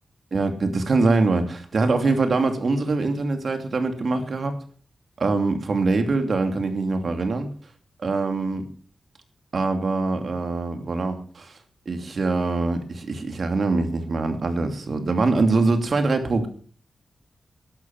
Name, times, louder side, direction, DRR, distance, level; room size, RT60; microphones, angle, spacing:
voice 1, 0.3-4.6 5.2-7.5 8.0-8.6 9.5-11.6 11.9-16.5, right 3 dB, 60° right, 6 dB, 2.8 m, -23 dB
12.0 x 12.0 x 6.1 m, 0.43 s
cardioid pair, 75°, 0 cm